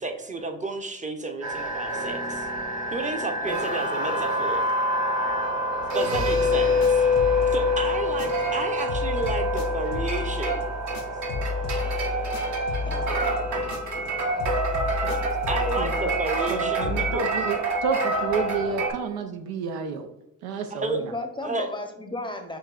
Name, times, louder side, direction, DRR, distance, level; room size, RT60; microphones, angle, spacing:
voice 1, 0.0-2.5 2.9-4.6 5.9-7.1 7.5-10.7 15.0-17.2 20.7-21.0 21.4-21.7, right 3 dB, 20° right, 5 dB, 0.8 m, -31 dB
sound 1, 1.4-18.9, equal, 45° right, 1.1 m, -26 dB
sound 2, 6.1-8.6 8.9-14.1 14.4-17.2, left 5 dB, 60° left, 0.7 m, -33 dB
voice 2, 8.2-8.6 12.8-13.5 21.0-22.6, left 2 dB, 10° left, 5 dB, 0.7 m, -36 dB
voice 3, 16.5-20.1 20.4-21.1, right 5 dB, 70° right, 6 dB, 0.6 m, -30 dB
6.9 x 3.0 x 2.4 m, 0.87 s
hypercardioid pair, 50°, 38 cm